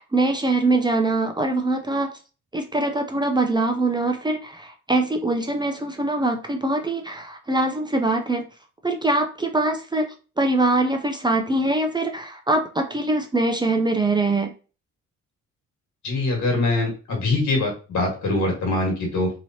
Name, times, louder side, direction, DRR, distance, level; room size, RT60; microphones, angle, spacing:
voice 1, 0.0-2.1 2.5-8.5 8.8-14.5, right 2 dB, 15° right, 4 dB, 0.5 m, -23 dB
voice 2, 16.0-19.3, left 2 dB, 70° left, 0 dB, 1.7 m, -23 dB
3.0 x 2.9 x 2.8 m, 0.35 s
cardioid pair, 90°, 30 cm